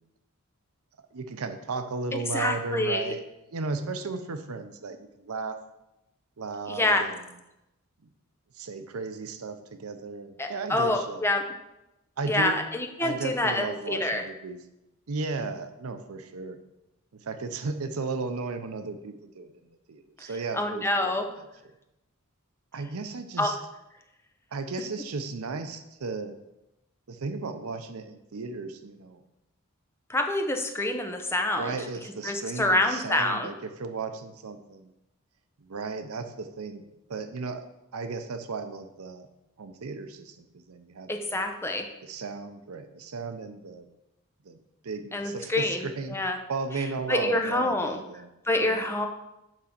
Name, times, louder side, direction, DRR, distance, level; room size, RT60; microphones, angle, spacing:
voice 1, 1.1-3.2 3.5-5.6 6.4-7.1 8.6-11.2 12.2-12.6 13.0-14.6 15.1-16.6 17.2-19.5 19.9-21.1 22.7-23.6 24.5-26.3 27.1-29.2 31.6-33.5 33.8-34.9 35.6-36.8 37.1-37.6 37.9-39.3 39.6-41.4 42.0-43.9 44.5-44.6 44.8-46.2 46.5-48.3 48.6-48.8, right 4 dB, 75° right, 8 dB, 0.6 m, -35 dB
voice 2, 2.1-3.1 6.7-7.1 10.4-11.5 12.3-14.2 20.5-21.3 23.4-23.6 30.1-31.9 32.2-33.5 41.1-41.9 45.1-46.4 46.7-48.0 48.5-49.1, left 1 dB, 10° left, 5 dB, 0.6 m, -27 dB
6.2 x 5.0 x 5.9 m, 0.92 s
head